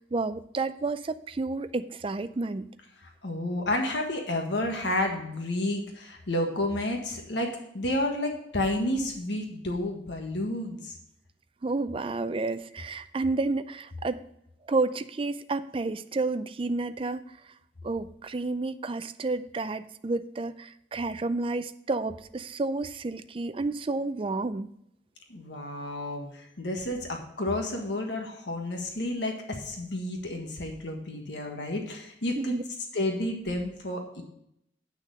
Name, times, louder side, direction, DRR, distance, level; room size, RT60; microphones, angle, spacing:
voice 1, 0.1-2.7 11.6-14.2 14.7-17.2 17.8-24.7 32.4-32.6, right 3 dB, 30° right, 12 dB, 0.4 m, -30 dB
voice 2, 3.2-7.5 7.7-11.0 25.3-32.5 32.9-34.2, left 1 dB, 75° left, 2 dB, 1.5 m, -31 dB
9.1 x 6.4 x 5.2 m, 0.75 s
head